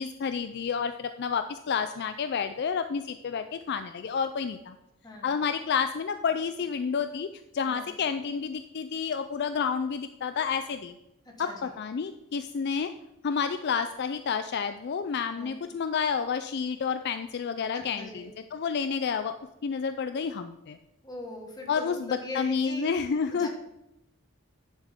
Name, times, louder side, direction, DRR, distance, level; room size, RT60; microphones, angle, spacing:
voice 1, 0.0-4.7 5.2-7.3 7.5-10.9 11.4-12.9 13.2-18.2 18.5-19.4 19.6-20.8 21.7-23.5, left 6 dB, 50° left, 9 dB, 0.4 m, -30 dB
voice 2, 5.0-5.3 7.7-7.9 11.2-11.7 15.3-15.5 17.7-18.2 21.0-22.9 23.3-23.5, left 2 dB, 20° left, 1 dB, 1.6 m, -41 dB
10.0 x 7.4 x 3.6 m, 0.91 s
head